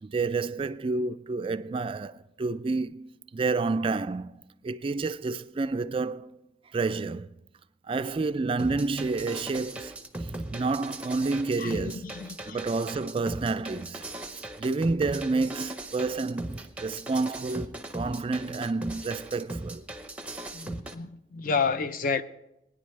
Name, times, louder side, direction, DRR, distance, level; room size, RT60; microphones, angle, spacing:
voice 1, 0.0-6.3 6.7-7.3 7.9-9.9 10.5-12.0 12.5-14.0 14.6-19.8, right 3 dB, 30° right, 0.3 m, -29 dB
sound 1, 8.6-20.9, right 1 dB, 5° right, 0.7 m, -38 dB
voice 2, 11.6-12.6 20.5-22.2, left 5 dB, 50° left, 0.5 m, -30 dB
20.0 x 10.0 x 3.2 m
head